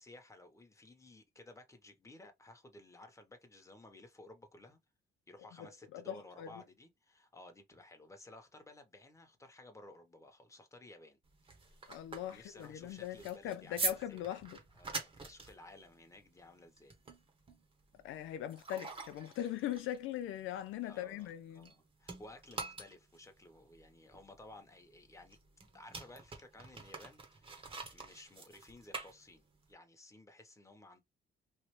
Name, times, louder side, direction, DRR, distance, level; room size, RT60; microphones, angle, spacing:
voice 1, 0.0-4.8 5.3-11.2 12.3-14.2 14.7-16.9 20.8-25.4 25.7-31.0, left 2 dB, 15° left, 1.0 m, -56 dB
voice 2, 5.6-6.5 11.9-14.6 18.0-21.7, left 12 dB, 85° left, 0.4 m, -40 dB
sound 1, 11.2-21.7 22.0-29.7, right 3 dB, 25° right, 1.0 m, -45 dB
3.2 x 2.5 x 3.1 m
cardioid pair, 90°, 20 cm